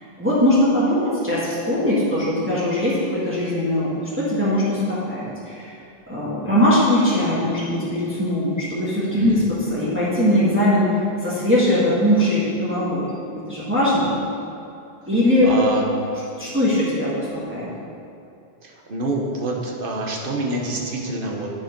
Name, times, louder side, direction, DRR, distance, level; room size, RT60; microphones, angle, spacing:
voice 1, 0.2-5.7 6.1-10.9 11.2-13.1 13.5-14.1 15.1-15.5 16.4-17.1 17.5-17.7, left 1 dB, 10° right, -9 dB, 1.6 m, -20 dB
voice 2, 15.4-15.9 18.6-21.5, right 2 dB, 60° right, 0 dB, 1.2 m, -27 dB
9.3 x 5.0 x 5.2 m, 2.6 s
omnidirectional pair, 1.0 m